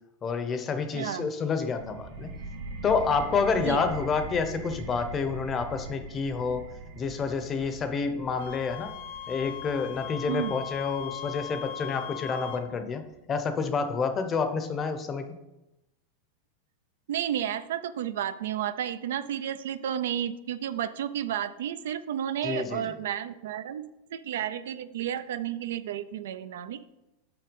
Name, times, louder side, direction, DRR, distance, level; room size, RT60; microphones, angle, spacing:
voice 1, 0.2-2.3 2.8-6.7 6.9-8.9 9.3-13.0 13.3-15.3 22.4-22.8, left 5 dB, 20° left, 8 dB, 0.7 m, -29 dB
voice 2, 0.9-1.3 3.6-3.8 10.3-10.6 17.1-26.9, right 10 dB, 80° right, 12 dB, 0.5 m, -32 dB
sound 1, 1.8-13.2, right 3 dB, 55° right, 1.4 m, -42 dB
Wind instrument woodwind instrument, 8.4-12.7, left 9 dB, 80° left, 1.0 m, -39 dB
6.8 x 5.9 x 5.3 m, 0.95 s
supercardioid pair, 160°, 0 cm